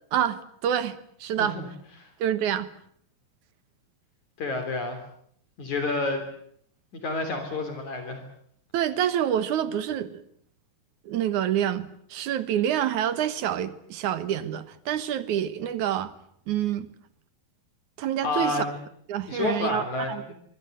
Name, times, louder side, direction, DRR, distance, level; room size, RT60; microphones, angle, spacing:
voice 1, 0.1-1.6 2.2-2.7 8.7-10.2 11.1-16.1 16.5-16.9 18.0-18.7 19.1-20.2, right 10 dB, 65° right, 14 dB, 2.6 m, -27 dB
voice 2, 4.4-5.0 5.6-6.2 6.9-8.2 18.2-18.8 19.3-20.2, left 3 dB, 60° left, 5 dB, 4.7 m, -29 dB
25.0 x 25.0 x 8.0 m, 0.66 s
omnidirectional pair, 3.9 m